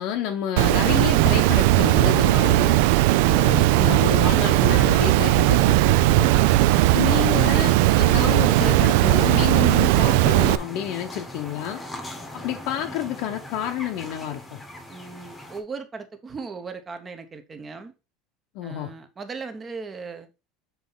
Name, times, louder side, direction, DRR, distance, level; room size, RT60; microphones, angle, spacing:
voice 1, 0.0-2.8 3.2-6.3 6.9-11.8 12.3-14.6 18.5-18.9, left 11 dB, 50° left, 0.8 m, -29 dB
Water, 0.6-10.6, right 16 dB, 65° right, 0.3 m, -18 dB
voice 2, 6.3-6.9 14.9-17.9 18.6-20.3, right 4 dB, 15° right, 0.8 m, -37 dB
sound 1, 6.5-15.6, left 1 dB, 10° left, 1.0 m, -40 dB
7.2 x 4.1 x 3.9 m
cardioid pair, 180°, 0 cm